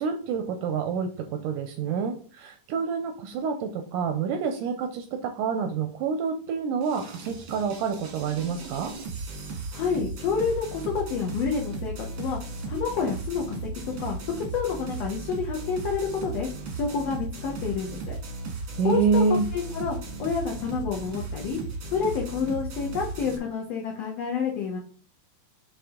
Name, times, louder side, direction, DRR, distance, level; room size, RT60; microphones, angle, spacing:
voice 1, 0.0-8.9 18.8-19.5, right 5 dB, 80° right, 6 dB, 1.9 m, -27 dB
sound 1, 6.8-23.4, right 3 dB, 60° right, 1.3 m, -36 dB
voice 2, 9.7-12.4 12.7-13.7 14.0-14.2 14.5-16.5 16.7-18.2 18.8-19.2 19.5-21.6 21.9-24.8, left 6 dB, 85° left, -1 dB, 1.4 m, -29 dB
8.4 x 3.4 x 3.7 m, 0.43 s
omnidirectional pair, 4.2 m